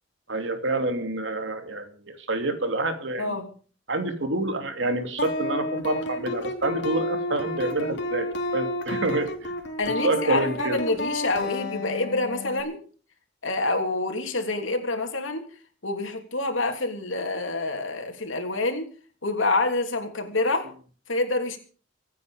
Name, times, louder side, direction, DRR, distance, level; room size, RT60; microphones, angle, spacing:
voice 1, 0.3-3.4 3.9-9.5 10.0-10.8, right 2 dB, 65° right, 6 dB, 2.9 m, -28 dB
voice 2, 3.2-3.5 9.8-12.8 13.4-15.5 15.8-18.9 19.2-20.7 21.1-21.6, left 2 dB, 90° left, 5 dB, 3.2 m, -27 dB
sound 1, 5.2-12.6, left 1 dB, 65° left, 2.9 m, -31 dB
25.0 x 9.2 x 5.1 m, 0.41 s
head